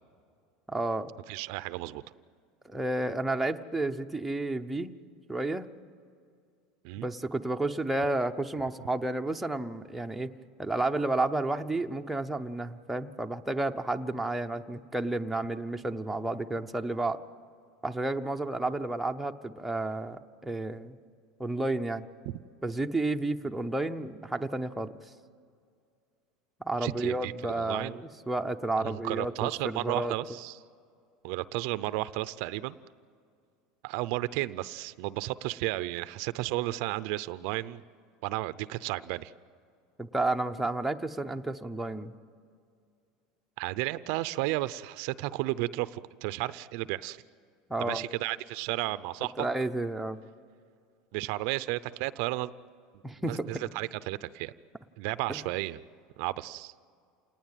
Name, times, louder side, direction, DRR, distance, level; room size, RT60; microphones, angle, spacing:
voice 1, 0.7-1.1 2.6-5.0 5.3-5.7 7.0-10.3 10.6-17.2 17.8-21.0 21.4-22.0 22.6-24.9 26.6-30.1 40.0-42.1 47.7-48.0 49.4-50.2 53.0-53.5 55.3-55.4, right 2 dB, 5° right, 3 dB, 0.7 m, -31 dB
voice 2, 1.3-2.0 6.8-7.1 26.8-28.0 28.8-30.6 31.2-32.8 33.8-37.8 38.2-39.3 43.6-47.2 47.8-49.5 51.1-52.5 53.3-54.5 55.0-55.8 56.2-56.7, right 18 dB, 60° right, 15 dB, 0.6 m, -33 dB
27.5 x 19.0 x 9.1 m, 2.3 s
supercardioid pair, 155°, 2 cm